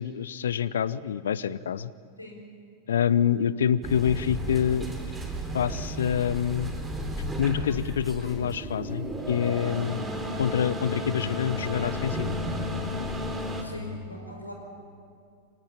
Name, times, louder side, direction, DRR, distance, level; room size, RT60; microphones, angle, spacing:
voice 1, 0.0-1.9 2.9-4.9 5.5-6.7 7.4-10.1 10.4-12.4, left 8 dB, 65° left, 20 dB, 0.7 m, -26 dB
sound 1, 3.8-13.6, equal, 10° right, 3.7 m, -33 dB
voice 2, 13.6-14.5, left 1 dB, 85° left, 2 dB, 5.1 m, -42 dB
25.0 x 18.0 x 10.0 m, 2.3 s
figure-of-eight pair, 90°, 0 cm